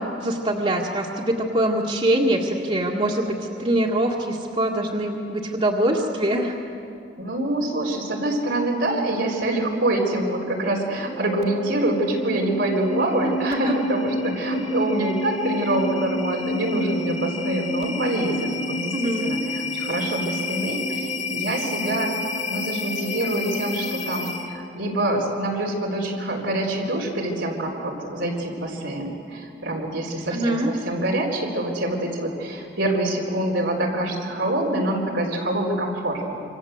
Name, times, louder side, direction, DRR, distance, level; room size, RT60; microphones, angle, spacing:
voice 1, 0.0-6.5 13.2-13.8 18.9-19.4 30.3-30.7, right 1 dB, 35° right, -4 dB, 1.9 m, -24 dB
voice 2, 7.2-22.1 22.5-36.4, right 1 dB, 85° right, -2 dB, 4.1 m, -25 dB
sound 1, 11.1-24.7, left 2 dB, 40° left, 2.4 m, -29 dB
27.0 x 25.5 x 8.0 m, 2.7 s
head